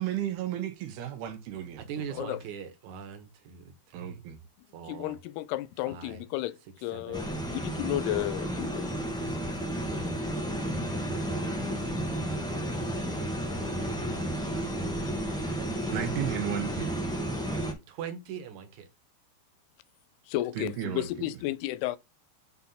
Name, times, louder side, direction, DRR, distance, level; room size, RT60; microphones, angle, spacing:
voice 1, 0.0-2.2 3.9-4.4 15.9-16.9 20.5-21.3, right 11 dB, 80° right, 3.3 m, -34 dB
voice 2, 1.8-4.2 4.7-5.2 5.9-6.2 6.9-8.3 8.7-9.5 11.5-12.0 12.7-13.2 13.5-14.1 15.5-16.0 17.2-18.9, right 7 dB, 55° right, 2.6 m, -43 dB
voice 3, 4.9-9.0 12.9-13.0 20.3-22.0, left 15 dB, 85° left, 2.7 m, -33 dB
sound 1, 7.1-17.7, right 1 dB, 5° left, 0.4 m, -32 dB
7.8 x 4.2 x 5.6 m
omnidirectional pair, 4.6 m